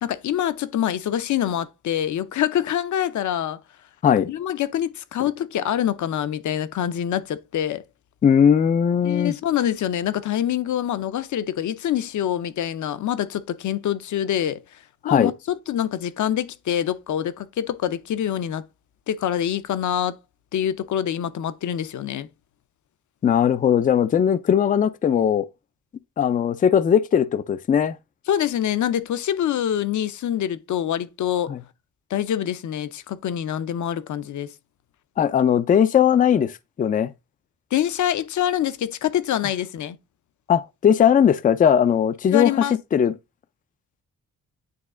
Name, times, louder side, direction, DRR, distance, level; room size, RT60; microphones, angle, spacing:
voice 1, 0.0-3.6 4.3-7.8 9.0-14.8 15.0-18.6 19.1-20.2 20.5-22.3 28.3-31.5 32.1-34.5 37.7-40.0 42.3-42.8, left 10 dB, 60° left, 0.7 m, -25 dB
voice 2, 8.2-9.3 15.0-15.3 23.2-25.5 26.2-27.9 31.5-31.6 35.2-36.5 36.8-37.1 40.5-42.5 42.9-43.1, left 8 dB, 25° left, 0.3 m, -18 dB
9.4 x 3.2 x 3.7 m
cardioid pair, 130°, 33 cm